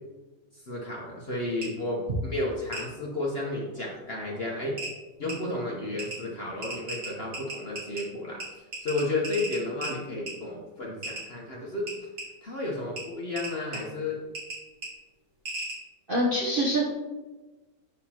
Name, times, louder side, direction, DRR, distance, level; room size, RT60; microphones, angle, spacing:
voice 1, 0.5-4.8 5.2-11.9 12.4-14.2, left 2 dB, 45° left, -3 dB, 0.9 m, -32 dB
sound 1, 1.6-1.7 2.7-2.8 4.2-4.3 4.8-4.9 5.3-5.4 6.0-6.2 6.6-8.0 8.4-8.5 8.7-9.9 10.3-10.4 11.0-11.2 11.9-12.3 13.0-13.1 13.4-13.8 14.3-14.6 14.8-14.9 15.5-15.8, right 2 dB, 80° right, 2.9 m, -35 dB
voice 2, 16.1-16.9, right 1 dB, 40° right, -4 dB, 0.8 m, -25 dB
6.7 x 6.5 x 2.8 m, 1.2 s
omnidirectional pair, 2.1 m